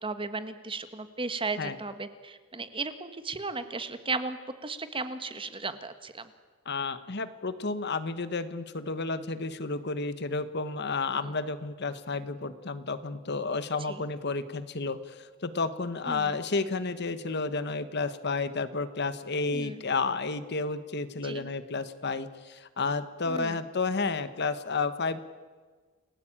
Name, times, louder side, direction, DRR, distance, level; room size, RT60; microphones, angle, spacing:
voice 1, 0.0-6.3 13.9-14.0 16.1-16.3 19.5-19.8 21.2-21.5 23.3-23.6, right 3 dB, 25° right, 10 dB, 1.5 m, -35 dB
voice 2, 6.6-25.2, left 3 dB, 55° left, 12 dB, 1.3 m, -31 dB
28.5 x 18.0 x 8.9 m, 1.4 s
head